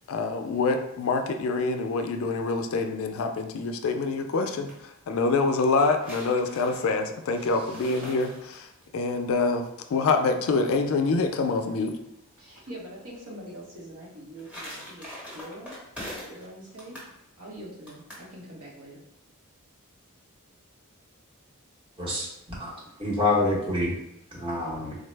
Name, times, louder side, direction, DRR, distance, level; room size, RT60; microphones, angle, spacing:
voice 1, 0.1-8.7 8.9-12.0, left 3 dB, 65° left, 6 dB, 0.3 m, -26 dB
sound 1, 4.2-4.8 5.5-8.8 14.0-16.5 16.8-17.1 17.9-18.3, left 1 dB, 5° right, 1.0 m, -42 dB
voice 2, 12.4-15.8 16.3-17.1 17.4-19.0, right 1 dB, 75° right, -4 dB, 1.0 m, -43 dB
voice 3, 22.0-22.7 23.0-23.9 24.4-25.0, left 2 dB, 25° right, -5 dB, 0.9 m, -27 dB
3.8 x 2.0 x 3.2 m, 0.84 s
head